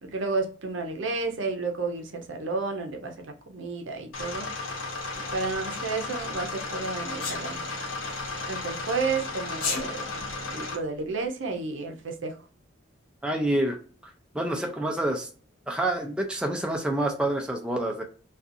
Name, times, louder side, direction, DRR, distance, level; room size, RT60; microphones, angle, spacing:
voice 1, 0.0-3.1 3.5-4.5 5.3-7.6 8.5-12.4, right 3 dB, 65° right, 0.6 m, -31 dB
sound 1, 4.1-10.8, left 3 dB, 90° left, 0.9 m, -34 dB
Sneeze, 7.2-7.4 9.5-9.8, left 4 dB, 45° left, 0.7 m, -29 dB
voice 2, 13.2-13.8 14.3-15.3 15.7-18.0, right 1 dB, 5° right, 0.4 m, -27 dB
2.5 x 2.3 x 2.6 m
head